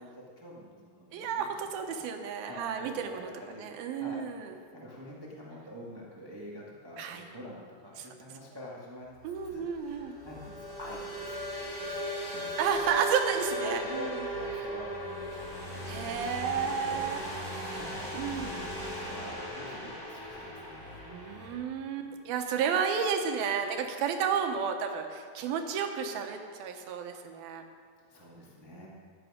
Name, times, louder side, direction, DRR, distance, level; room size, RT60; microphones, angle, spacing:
voice 1, 0.0-2.0 2.4-4.2 4.7-9.1 9.4-12.8 13.6-15.9 16.4-20.9 22.0-22.2 28.1-28.9, equal, 15° right, -4 dB, 0.7 m, -47 dB
voice 2, 1.1-3.3 3.6-4.5 7.0-7.3 8.0-8.1 9.2-10.2 12.6-14.3 14.5-14.7 15.9-17.8 18.1-18.6 21.1-27.6, right 7 dB, 85° right, 5 dB, 2.9 m, -32 dB
sound 1, 9.1-21.6, equal, 15° left, 3.3 m, -37 dB
15.5 x 11.0 x 5.1 m, 2.1 s
omnidirectional pair, 4.2 m